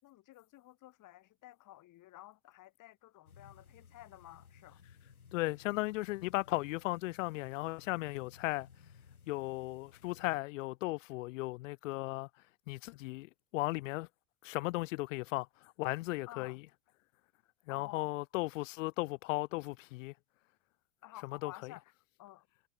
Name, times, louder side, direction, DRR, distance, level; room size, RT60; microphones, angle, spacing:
voice 1, 0.0-4.8 16.3-16.6 17.7-18.1 21.0-21.9 22.2-22.5, left 16 dB, 45° left, 7.2 m, -53 dB
sound 1, 3.3-10.4, left 6 dB, 90° left, 7.0 m, -60 dB
voice 2, 5.3-8.7 9.3-12.3 12.7-14.1 14.4-16.6 17.7-20.1 21.2-21.7, left 21 dB, 65° left, 0.6 m, -36 dB
hypercardioid pair, 85°, 42 cm